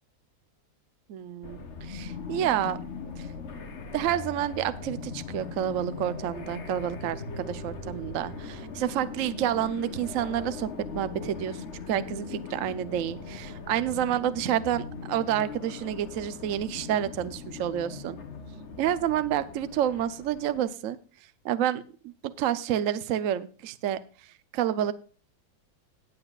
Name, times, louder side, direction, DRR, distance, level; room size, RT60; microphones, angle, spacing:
voice 1, 1.1-2.8 3.2-3.3 3.9-18.2 18.8-21.0 21.4-22.1 22.4-24.0 24.5-24.9, right 11 dB, 60° right, 13 dB, 0.9 m, -29 dB
sound 1, 1.4-20.6, left 5 dB, 45° left, 1.2 m, -40 dB
19.0 x 7.9 x 2.4 m, 0.37 s
omnidirectional pair, 2.0 m